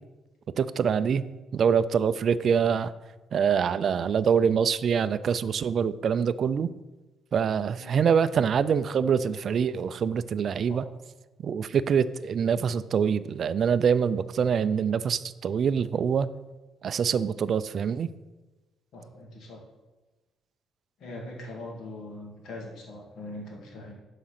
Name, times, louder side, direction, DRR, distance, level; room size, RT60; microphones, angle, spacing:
voice 1, 0.6-1.2 1.5-2.9 3.3-6.7 7.3-10.9 11.4-16.3 16.8-18.1, right 7 dB, 35° right, 14 dB, 0.4 m, -25 dB
voice 2, 18.9-19.6 21.0-23.9, left 1 dB, 55° left, 0 dB, 2.4 m, -41 dB
11.5 x 4.9 x 5.9 m, 1.2 s
cardioid pair, 175°, 0 cm